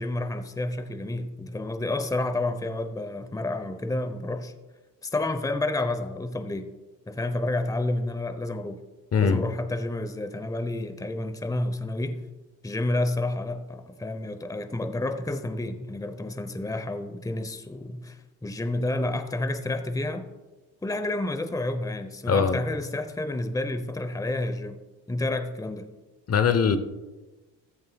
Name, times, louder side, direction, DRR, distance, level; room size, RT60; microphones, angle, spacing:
voice 1, 0.0-4.5 5.0-6.7 7.1-8.8 9.2-12.2 12.6-20.3 20.8-24.8 25.1-25.9, left 2 dB, 10° left, 10 dB, 0.9 m, -30 dB
voice 2, 9.1-9.5 22.3-22.6 26.3-26.8, left 6 dB, 35° left, 10 dB, 1.0 m, -21 dB
14.5 x 14.0 x 2.4 m, 1.2 s
hypercardioid pair, 50°, 40 cm